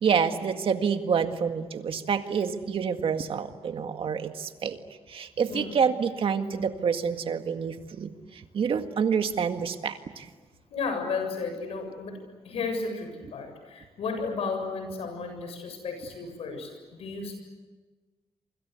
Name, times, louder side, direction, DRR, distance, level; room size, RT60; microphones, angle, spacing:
voice 1, 0.0-4.8 5.1-10.3, right 6 dB, 65° right, 7 dB, 1.9 m, -28 dB
voice 2, 5.5-5.8 10.7-17.4, left 4 dB, 80° left, 6 dB, 7.4 m, -33 dB
28.0 x 25.0 x 8.2 m, 1.3 s
cardioid pair, 90°, 10 cm